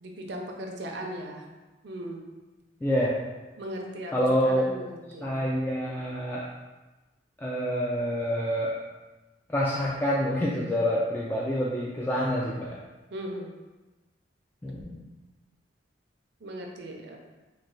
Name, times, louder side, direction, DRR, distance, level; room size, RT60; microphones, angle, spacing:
voice 1, 0.0-1.4 1.8-2.2 3.6-4.1 4.4-5.3 13.1-13.5 16.4-17.2, equal, 70° right, 1 dB, 0.6 m, -37 dB
voice 2, 2.8-3.1 4.1-4.7 5.2-6.5 7.4-8.8 9.5-12.8 14.6-15.0, equal, 10° left, -6 dB, 0.3 m, -27 dB
3.2 x 2.2 x 3.8 m, 1.1 s
head